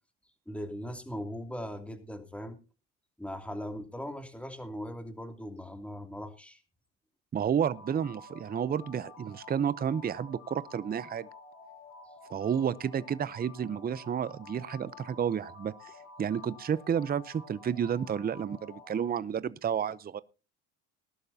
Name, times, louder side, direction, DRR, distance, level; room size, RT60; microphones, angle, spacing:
voice 1, 0.5-2.6 3.2-6.6, equal, 5° left, 2.8 m, -39 dB
voice 2, 7.3-11.3 12.3-15.9 16.2-20.2, right 8 dB, 25° right, 0.7 m, -31 dB
sound 1, 7.7-19.1, left 3 dB, 65° left, 7.2 m, -50 dB
19.5 x 12.0 x 2.8 m
supercardioid pair, 80°, 35 cm